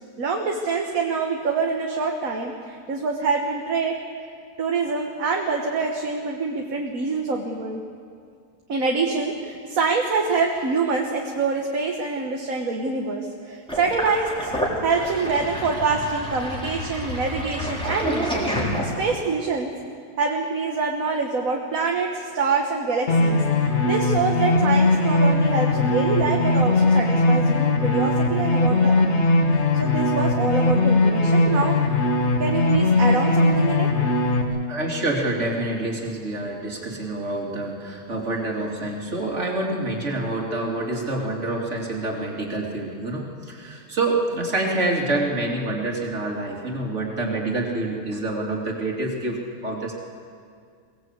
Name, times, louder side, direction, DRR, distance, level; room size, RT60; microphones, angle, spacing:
voice 1, 0.2-4.0 4.6-7.8 8.7-14.5 14.8-18.5 18.8-19.7 20.2-31.8 32.4-33.9, right 4 dB, 65° right, 1 dB, 1.9 m, -25 dB
Sink (filling or washing), 13.7-19.3, equal, 5° left, 4.0 m, -29 dB
sound 1, 23.1-34.4, left 2 dB, 50° left, 1.8 m, -20 dB
voice 2, 34.7-49.9, right 2 dB, 50° right, -1 dB, 3.3 m, -27 dB
23.0 x 18.5 x 8.2 m, 2.2 s
omnidirectional pair, 1.6 m